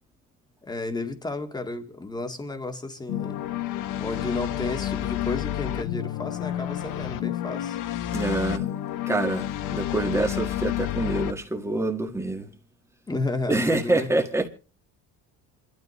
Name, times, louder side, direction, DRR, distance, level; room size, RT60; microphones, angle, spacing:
voice 1, 0.6-3.5 4.0-7.8 13.1-14.1, left 2 dB, 10° left, 2.0 m, -32 dB
sound 1, 3.1-11.3, left 12 dB, 60° left, 1.1 m, -30 dB
voice 2, 8.1-8.8 9.1-12.5 13.5-14.5, right 2 dB, 10° right, 1.8 m, -26 dB
27.5 x 12.5 x 3.2 m
cardioid pair, 145°, 35 cm